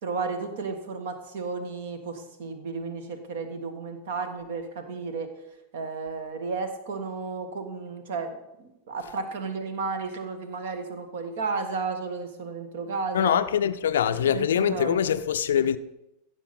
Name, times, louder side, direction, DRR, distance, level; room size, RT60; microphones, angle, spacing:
voice 1, 0.0-5.3 5.7-8.3 8.6-13.4 14.0-15.1, right 4 dB, 55° right, 1.4 m, -33 dB
voice 2, 13.1-15.8, left 9 dB, 60° left, 0.4 m, -23 dB
15.5 x 7.1 x 4.2 m
figure-of-eight pair, 90°, 0 cm